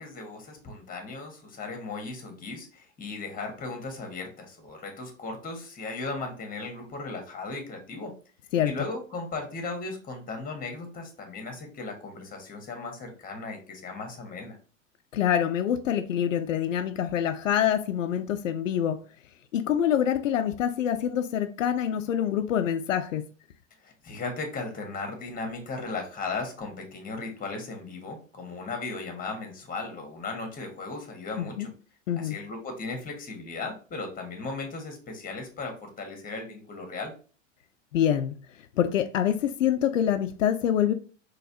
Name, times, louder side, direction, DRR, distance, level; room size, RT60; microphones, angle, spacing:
voice 1, 0.0-8.1 8.6-14.6 23.8-31.7 32.2-37.1, left 3 dB, 20° left, 1.5 m, -36 dB
voice 2, 15.1-19.0 19.5-23.2 31.4-31.7 32.1-32.3 37.9-38.4 38.8-40.9, left 9 dB, 85° left, 0.5 m, -26 dB
4.0 x 3.1 x 2.8 m
hypercardioid pair, 95°, 38 cm